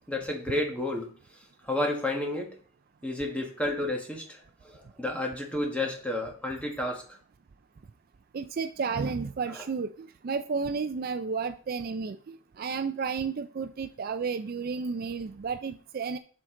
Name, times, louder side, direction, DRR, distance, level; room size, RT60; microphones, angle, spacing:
voice 1, 0.1-1.1 1.6-2.5 3.0-4.4 4.6-7.1, left 1 dB, 5° left, 1 dB, 1.4 m, -31 dB
voice 2, 8.3-16.2, right 5 dB, 45° right, 11 dB, 0.4 m, -32 dB
7.4 x 6.3 x 3.8 m, 0.43 s
head